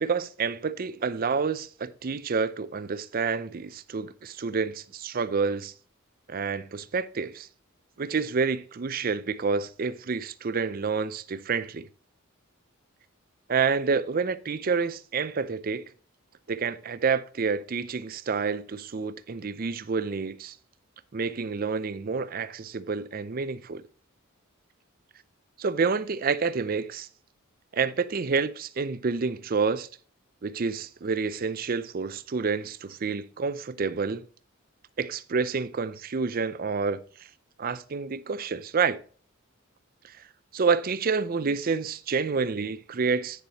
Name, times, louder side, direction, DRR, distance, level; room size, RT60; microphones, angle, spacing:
voice 1, 0.0-5.7 6.3-7.5 8.0-11.9 13.5-15.9 16.5-20.6 21.1-23.8 25.6-27.1 27.7-29.9 30.4-34.3 35.0-37.0 37.6-39.0 40.0-40.2 40.5-43.4, right 5 dB, 40° right, 0.5 m, -28 dB
9.3 x 7.0 x 3.0 m
head